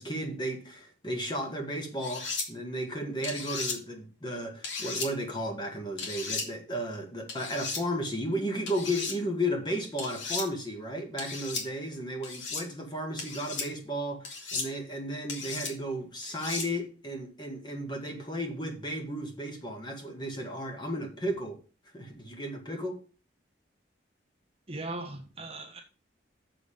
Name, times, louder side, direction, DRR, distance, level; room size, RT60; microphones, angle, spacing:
voice 1, 0.0-21.6 21.9-23.0, equal, 25° left, 1.9 m, -34 dB
sound 1, 2.0-2.5 3.2-3.8 4.6-5.1 6.0-6.5 7.3-7.8 8.7-9.2 10.0-10.5 11.2-11.6 12.2-12.6 13.2-13.7 14.2-14.7 15.3-15.7 16.2-16.7, left 4 dB, 80° left, 2.5 m, -35 dB
voice 2, 24.7-25.8, right 2 dB, 30° right, 1.3 m, -38 dB
6.9 x 5.1 x 7.1 m
head